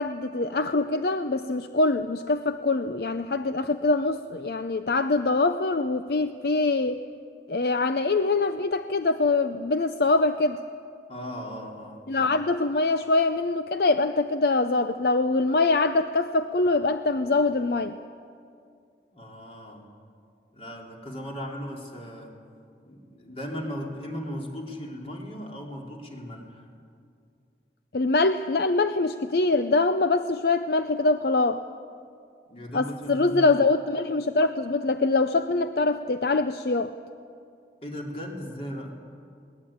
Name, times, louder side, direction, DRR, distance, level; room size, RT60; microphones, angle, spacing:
voice 1, 0.0-7.0 7.5-10.6 12.1-18.0 27.9-31.6 32.7-36.9, left 3 dB, 60° left, 10 dB, 0.6 m, -24 dB
voice 2, 11.1-12.4 19.1-19.8 20.5-22.4 22.9-26.6 32.5-33.7 37.8-39.0, equal, 35° left, 0 dB, 3.3 m, -37 dB
21.5 x 19.5 x 8.7 m, 2.4 s
head